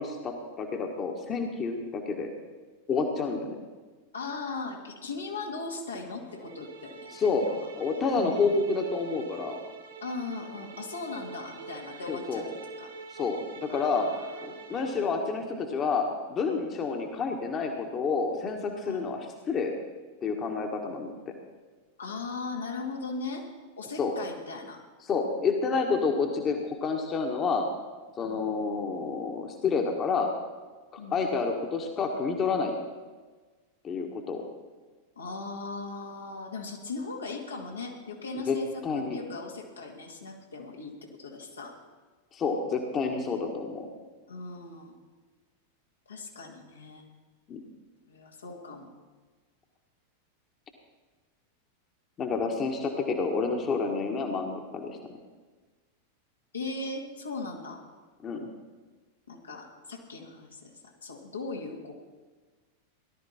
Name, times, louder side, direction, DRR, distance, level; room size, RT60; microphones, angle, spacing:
voice 1, 0.0-2.3 2.9-3.6 7.1-7.5 7.8-9.6 12.1-12.4 13.1-14.1 14.4-19.2 19.5-19.7 20.2-21.1 24.0-24.1 25.1-27.7 28.2-30.3 30.9-32.8 33.8-34.4 38.5-38.6 38.8-39.2 42.3-43.9 47.5-47.6 52.2-55.0 58.2-58.5, left 4 dB, 25° left, 3 dB, 1.6 m, -29 dB
voice 2, 4.1-7.1 7.4-7.7 8.1-8.8 10.0-12.5 12.8-12.9 13.7-14.5 18.8-19.1 22.0-23.5 23.8-24.8 28.2-28.5 31.0-31.2 35.2-41.8 44.3-44.9 46.1-47.1 48.1-48.9 56.5-57.8 59.3-61.9, left 3 dB, 75° left, 0 dB, 2.2 m, -38 dB
sound 1, 6.3-15.1, right 4 dB, 70° right, 2.0 m, -46 dB
18.0 x 12.0 x 4.3 m, 1.4 s
figure-of-eight pair, 90°, 0 cm